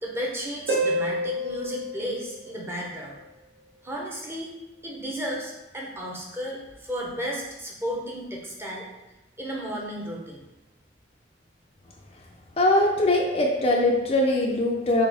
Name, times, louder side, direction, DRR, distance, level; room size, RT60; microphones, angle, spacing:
voice 1, 0.0-3.1 3.8-4.5 4.8-8.9 9.4-10.4, equal, 15° right, -2 dB, 0.7 m, -33 dB
Harp, 0.7-3.2 6.7-6.8, right 1 dB, 65° right, 1.2 m, -29 dB
voice 2, 12.6-15.1, left 1 dB, 30° left, 0 dB, 0.4 m, -21 dB
4.2 x 3.7 x 3.4 m, 1.0 s
head